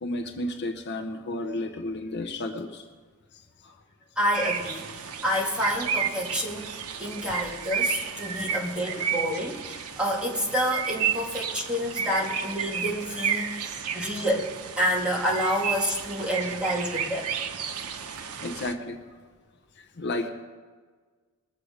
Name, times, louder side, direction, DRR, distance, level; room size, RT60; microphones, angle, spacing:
voice 1, 0.0-2.8 8.9-9.1 13.7-14.0 16.4-16.5 18.4-19.0 20.0-20.3, left 1 dB, 50° left, 4 dB, 0.7 m, -32 dB
voice 2, 4.2-6.7 7.0-14.5 14.8-17.3, equal, 5° right, -3 dB, 1.9 m, -28 dB
sound 1, 4.3-18.7, right 7 dB, 80° right, 0.9 m, -32 dB
21.0 x 7.6 x 5.0 m, 1.5 s
head